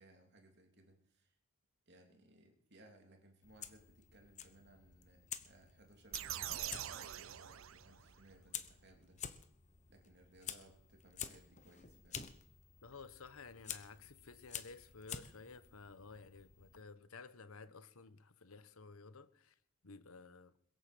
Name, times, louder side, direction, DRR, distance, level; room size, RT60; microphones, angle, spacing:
voice 1, 0.0-1.4 1.9-9.2 9.9-12.3, right 1 dB, 50° right, 2.9 m, -64 dB
Fire, 3.4-16.8, left 8 dB, 35° left, 1.0 m, -50 dB
sound 1, 6.1-8.2, right 12 dB, 70° right, 0.5 m, -44 dB
voice 2, 12.8-20.5, left 4 dB, 85° left, 1.1 m, -54 dB
21.5 x 7.8 x 7.8 m
head